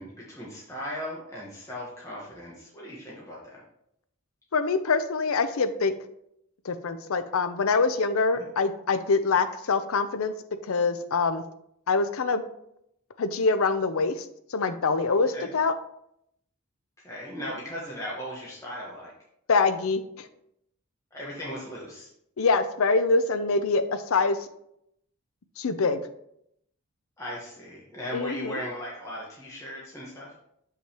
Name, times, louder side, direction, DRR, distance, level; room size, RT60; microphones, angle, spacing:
voice 1, 0.0-3.6 8.3-8.4 15.1-15.5 17.0-19.1 21.1-22.1 27.2-30.4, equal, 15° left, -5 dB, 1.1 m, -38 dB
voice 2, 4.5-5.9 6.6-10.3 10.7-11.4 11.9-12.4 13.2-14.2 14.5-15.7 19.5-20.3 22.4-24.4 25.6-26.0 28.1-28.6, left 4 dB, 75° left, 11 dB, 0.5 m, -24 dB
6.3 x 5.7 x 2.9 m, 0.75 s
head